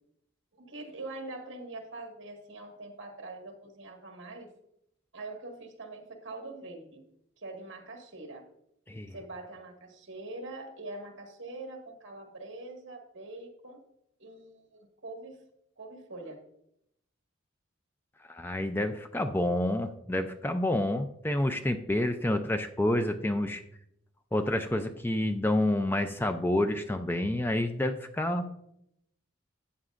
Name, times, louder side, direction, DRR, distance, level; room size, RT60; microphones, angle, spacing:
voice 1, 0.5-4.5 5.1-7.0 7.4-8.4 9.1-13.8 14.2-15.4 15.8-16.4, right 2 dB, 65° right, 2 dB, 1.8 m, -43 dB
voice 2, 18.3-23.6 24.3-28.4, left 1 dB, 10° left, 7 dB, 0.4 m, -28 dB
12.5 x 8.4 x 2.5 m, 0.76 s
head